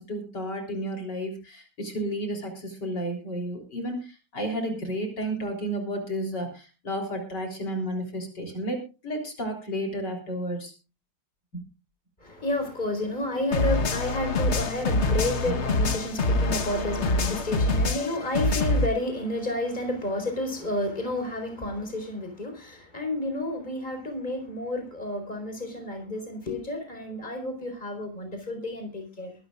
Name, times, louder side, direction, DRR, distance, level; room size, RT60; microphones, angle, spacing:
voice 1, 0.0-8.8 9.0-10.7 11.5-11.6 15.4-15.5, right 1 dB, 60° left, 4.3 m, -32 dB
voice 2, 12.2-29.3, left 1 dB, 20° left, 4.4 m, -31 dB
sound 1, 13.5-18.9, left 2 dB, 40° left, 1.3 m, -25 dB
23.0 x 13.5 x 2.4 m
omnidirectional pair, 2.1 m